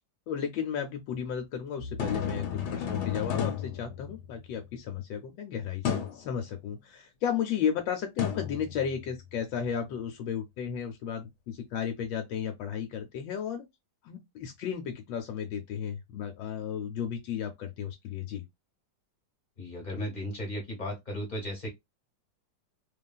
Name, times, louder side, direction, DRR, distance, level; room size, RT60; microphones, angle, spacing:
voice 1, 0.3-13.6 14.0-18.4, left 8 dB, 85° left, 1.3 m, -34 dB
sound 1, 1.8-4.6 5.8-6.3 8.2-9.3, left 8 dB, 70° left, 1.3 m, -33 dB
voice 2, 19.6-21.7, left 1 dB, 35° left, 0.8 m, -35 dB
2.9 x 2.4 x 2.2 m
omnidirectional pair, 2.0 m